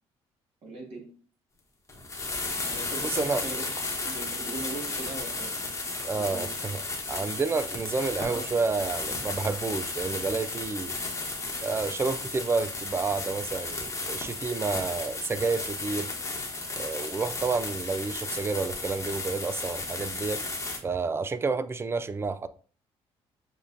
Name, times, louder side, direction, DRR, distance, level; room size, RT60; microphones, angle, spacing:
voice 1, 0.6-1.1 2.6-3.7 4.0-5.7 6.0-6.5 8.2-8.9, right 2 dB, 60° right, 2.1 m, -40 dB
sound 1, 1.9-20.8, left 3 dB, 25° left, 1.1 m, -34 dB
voice 2, 3.0-3.4 6.0-10.9 11.6-16.1 16.8-20.4 20.8-22.5, right 4 dB, 20° right, 0.3 m, -30 dB
7.0 x 2.4 x 2.6 m
cardioid pair, 100°, 11 cm